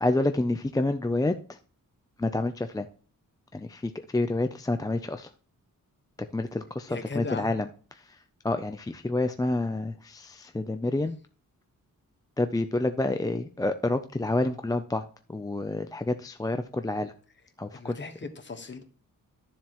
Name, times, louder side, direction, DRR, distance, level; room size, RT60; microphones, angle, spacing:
voice 1, 0.0-1.6 2.2-2.9 3.5-5.3 6.2-11.2 12.4-17.1 17.6-18.0, left 2 dB, 10° left, 8 dB, 0.4 m, -29 dB
voice 2, 6.9-7.5 17.7-18.1 18.4-18.8, left 4 dB, 35° left, 6 dB, 1.2 m, -37 dB
12.0 x 7.2 x 2.9 m, 0.42 s
wide cardioid pair, 130°, 34 cm